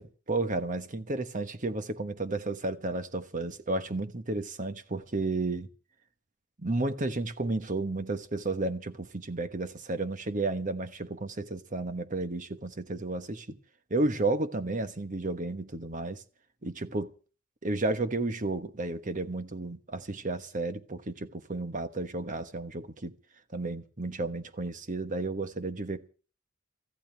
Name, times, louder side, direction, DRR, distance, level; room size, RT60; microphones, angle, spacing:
voice 1, 0.0-5.7 6.6-13.6 13.9-16.2 16.6-17.1 17.6-23.1 23.5-26.1, right 2 dB, 40° right, 1.2 m, -32 dB
24.0 x 14.5 x 3.4 m
head